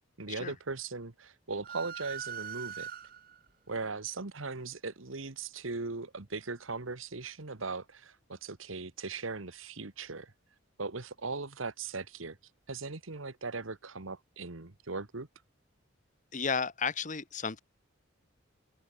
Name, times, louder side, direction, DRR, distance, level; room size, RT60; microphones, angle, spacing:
voice 1, 0.2-2.9 3.7-10.3 10.8-12.4 12.7-15.3, right 4 dB, 85° right, 1.6 m, -39 dB
sound 1, 1.6-3.5, right 8 dB, 45° right, 2.0 m, -41 dB
voice 2, 16.3-17.6, left 5 dB, 40° left, 1.3 m, -33 dB
open air
head